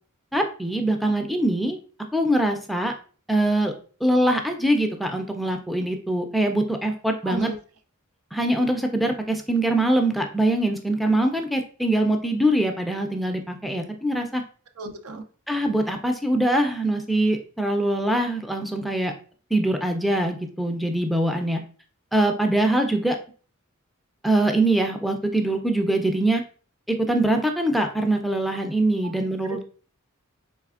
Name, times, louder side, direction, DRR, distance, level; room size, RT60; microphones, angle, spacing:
voice 1, 0.3-1.8 2.1-2.9 3.3-3.8 4.0-7.5 8.3-14.4 15.5-19.1 19.5-21.6 22.1-23.2 24.2-26.4 26.9-29.6, right 1 dB, ahead, 4 dB, 0.4 m, -23 dB
voice 2, 7.2-7.6 14.8-15.2 29.0-29.1 29.4-29.6, right 3 dB, 80° right, 7 dB, 0.5 m, -32 dB
4.1 x 3.1 x 2.4 m, 0.40 s
head